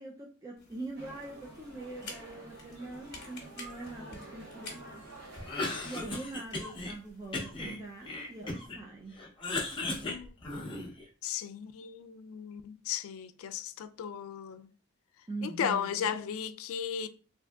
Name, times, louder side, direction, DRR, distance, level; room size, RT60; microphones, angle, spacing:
voice 1, 0.0-5.0 5.8-9.2 15.3-16.1, right 2 dB, 15° right, 0.3 m, -43 dB
sound 1, 0.6-8.7, left 3 dB, 50° left, 0.9 m, -52 dB
sound 2, 1.0-6.2, right 2 dB, 60° right, 0.9 m, -49 dB
Cough, 5.4-6.9 7.3-8.8 9.1-11.0, left 2 dB, 25° left, 0.6 m, -36 dB
voice 2, 10.0-10.4 11.2-14.7 15.4-17.1, left 8 dB, 80° left, 0.3 m, -35 dB
3.5 x 2.6 x 2.2 m
head